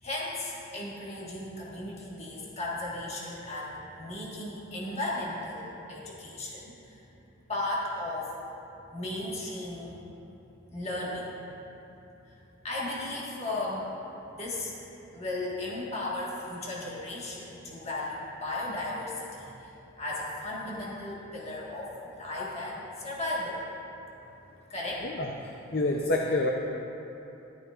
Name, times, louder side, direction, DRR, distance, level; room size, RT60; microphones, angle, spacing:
voice 1, 0.0-7.0 7.5-8.3 8.9-10.0 10.7-11.4 12.3-12.4 12.6-13.9 14.3-14.7 15.1-19.7 20.0-23.6 24.7-25.0, left 2 dB, 30° left, -6 dB, 1.5 m, -35 dB
voice 2, 25.0-26.5, left 2 dB, 45° left, 1 dB, 0.6 m, -28 dB
13.5 x 12.0 x 2.4 m, 3.0 s
head